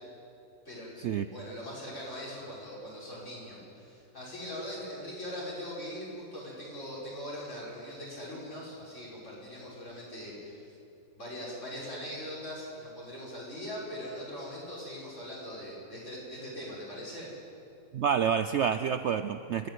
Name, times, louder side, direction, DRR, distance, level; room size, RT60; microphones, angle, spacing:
voice 1, 0.6-10.7 11.1-17.3, equal, 50° left, -6 dB, 6.6 m, -41 dB
voice 2, 17.9-19.7, right 7 dB, 65° right, 10 dB, 0.7 m, -28 dB
27.5 x 10.5 x 9.4 m, 2.7 s
omnidirectional pair, 1.6 m